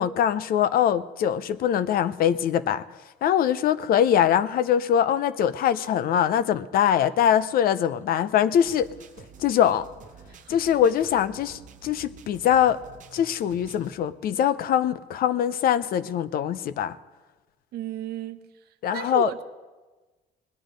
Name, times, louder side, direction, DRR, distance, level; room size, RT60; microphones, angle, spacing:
voice 1, 0.0-2.9 3.2-8.9 9.4-9.9 10.5-12.8 13.1-17.0 18.8-19.3, left 9 dB, 60° left, 16 dB, 0.6 m, -23 dB
sound 1, 8.7-14.0, right 6 dB, 50° right, 1.0 m, -49 dB
voice 2, 17.7-18.4 18.9-19.4, right 11 dB, 70° right, 10 dB, 0.8 m, -33 dB
19.5 x 10.0 x 5.2 m, 1.2 s
cardioid pair, 110°, 17 cm